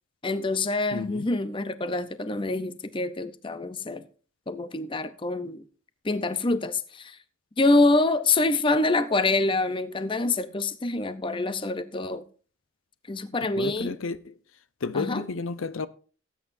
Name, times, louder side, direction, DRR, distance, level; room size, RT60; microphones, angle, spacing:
voice 1, 0.2-4.0 4.5-5.6 6.0-7.2 7.6-12.2 13.1-14.0 14.9-15.2, left 2 dB, 25° left, 0.6 m, -26 dB
voice 2, 0.9-1.3 13.6-14.3 14.8-15.9, left 4 dB, 80° left, 0.6 m, -31 dB
18.0 x 8.8 x 2.6 m
head